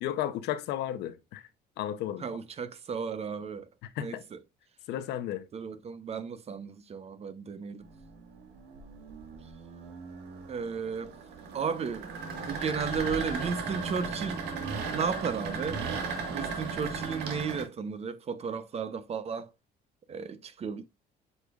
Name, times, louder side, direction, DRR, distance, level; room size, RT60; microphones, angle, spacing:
voice 1, 0.0-1.4 1.8-2.2 3.8-4.2 4.9-5.4, left 11 dB, 80° left, 0.8 m, -33 dB
voice 2, 2.2-3.7 4.0-4.4 5.5-7.8 10.5-11.1 11.5-12.1 12.4-14.4 14.9-15.8 16.3-19.5 20.1-20.8, right 6 dB, 40° right, 0.7 m, -34 dB
sound 1, 7.8-17.6, right 4 dB, 80° right, 1.6 m, -36 dB
8.1 x 5.2 x 2.4 m
cardioid pair, 110°, 17 cm